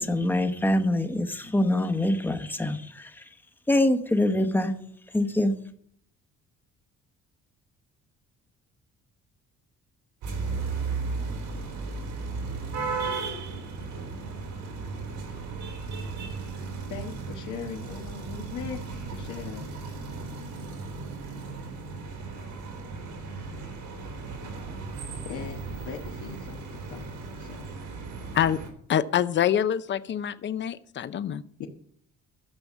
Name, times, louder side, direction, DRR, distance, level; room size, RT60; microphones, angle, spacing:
voice 1, 0.0-3.1 3.7-4.7 5.1-5.5, left 1 dB, 5° left, 7 dB, 0.9 m, -24 dB
sound 1, 10.2-28.7, right 4 dB, 90° right, 3.9 m, -35 dB
voice 2, 16.9-18.8 19.1-19.7 25.2-27.8 31.6-31.7, left 6 dB, 80° left, 0 dB, 1.5 m, -39 dB
voice 3, 28.9-31.4, left 9 dB, 40° left, 14 dB, 0.6 m, -25 dB
13.0 x 7.0 x 7.2 m, 0.63 s
cardioid pair, 160°, 30 cm